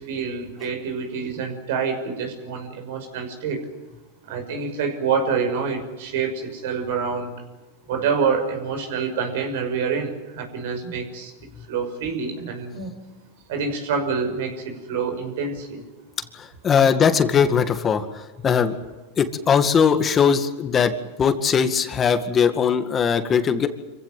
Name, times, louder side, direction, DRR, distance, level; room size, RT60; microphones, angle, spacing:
voice 1, 0.0-3.6 4.3-7.3 7.9-11.3 11.7-12.9 13.5-15.8, right 5 dB, 70° right, 7 dB, 5.9 m, -27 dB
voice 2, 16.6-18.0 18.4-18.8 19.2-20.9 21.2-23.7, left 7 dB, 25° left, 8 dB, 2.0 m, -19 dB
26.0 x 16.0 x 9.2 m, 1.2 s
hypercardioid pair, 110°, 0 cm